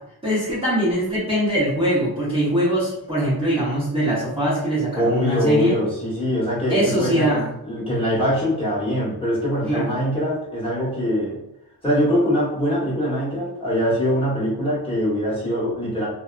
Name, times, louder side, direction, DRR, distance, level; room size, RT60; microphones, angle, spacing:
voice 1, 0.2-5.8 6.7-7.5 9.7-10.0, right 1 dB, 15° right, -10 dB, 0.8 m, -22 dB
voice 2, 4.9-7.4 7.6-11.4 11.8-16.1, equal, 15° left, -8 dB, 1.1 m, -23 dB
2.7 x 2.2 x 2.4 m, 0.82 s
wide cardioid pair, 130°, 41 cm